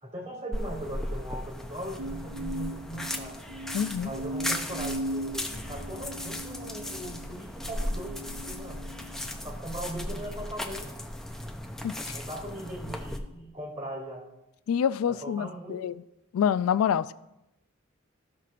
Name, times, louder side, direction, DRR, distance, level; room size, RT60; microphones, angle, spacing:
voice 1, 0.0-3.4 4.0-8.8 9.4-11.1 11.5-11.6 12.0-14.3 15.1-15.9, right 1 dB, 35° right, 2.3 m, -39 dB
sound 1, 0.5-13.2, left 1 dB, ahead, 0.5 m, -36 dB
sound 2, 2.0-9.4 10.0-10.5, right 1 dB, 60° right, 0.3 m, -39 dB
voice 2, 3.7-4.1 11.8-12.2 14.7-15.9 16.3-17.1, left 8 dB, 85° left, 0.3 m, -27 dB
14.0 x 5.9 x 2.5 m
head